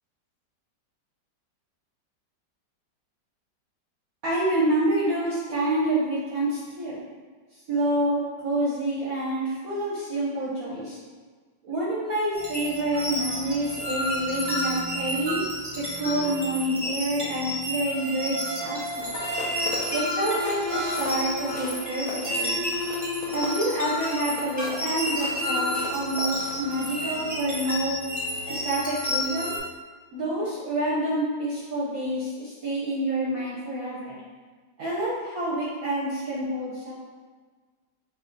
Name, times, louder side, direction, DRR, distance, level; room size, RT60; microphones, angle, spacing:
voice 1, 4.2-7.0 7.7-11.0 11.6-15.4 15.7-19.2 19.9-22.6 23.3-27.9 28.5-29.6 30.1-34.2 34.8-36.9, right 1 dB, 65° right, -6 dB, 1.0 m, -28 dB
sound 1, 12.3-29.6, left 1 dB, 10° left, 1.1 m, -30 dB
sound 2, 18.9-27.1 27.6-27.8, left 4 dB, 70° left, 0.8 m, -39 dB
4.6 x 3.0 x 2.6 m, 1.5 s
omnidirectional pair, 2.0 m